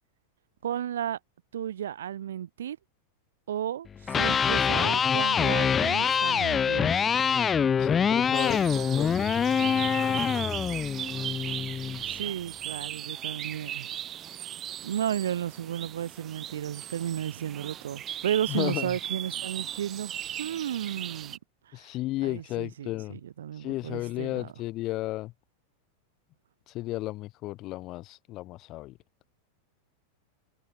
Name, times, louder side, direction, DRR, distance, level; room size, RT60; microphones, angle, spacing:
voice 1, 0.6-1.2 1.5-2.8 3.5-7.1 12.1-13.9 14.8-21.4 21.7-21.9 22.2-24.5, right 10 dB, 60° right, 7.6 m, -33 dB
Electric guitar, 4.0-12.1, left 7 dB, 20° left, 0.3 m, -25 dB
voice 2, 7.8-10.4 18.5-19.0 21.7-23.2 23.6-25.3 26.7-29.0, left 17 dB, 35° left, 7.1 m, -34 dB
sound 1, 8.3-21.4, right 11 dB, 30° right, 5.0 m, -37 dB
figure-of-eight pair, 90°, 0 cm